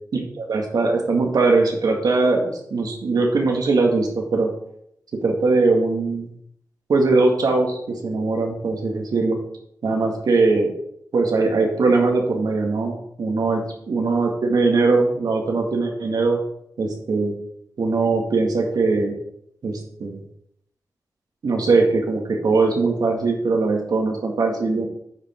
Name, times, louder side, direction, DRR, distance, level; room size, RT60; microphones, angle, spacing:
voice 1, 0.1-4.5 5.2-6.3 6.9-9.4 9.8-10.7 11.1-13.6 13.9-16.4 16.8-17.3 17.8-19.1 19.6-20.2 21.4-24.9, right 3 dB, 85° right, 1 dB, 1.9 m, -20 dB
9.4 x 5.3 x 4.6 m, 0.73 s
wide cardioid pair, 85°, 6 cm